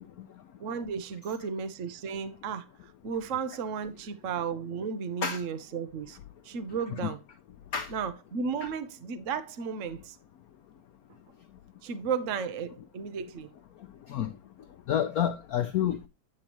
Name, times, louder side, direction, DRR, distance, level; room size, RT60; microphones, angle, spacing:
voice 1, 0.6-6.2 6.4-7.2 7.9-10.2 11.8-13.5, right 6 dB, 50° right, 0.9 m, -34 dB
voice 2, 14.9-16.1, left 9 dB, 90° left, 0.7 m, -28 dB
9.0 x 8.7 x 3.0 m
omnidirectional pair, 2.3 m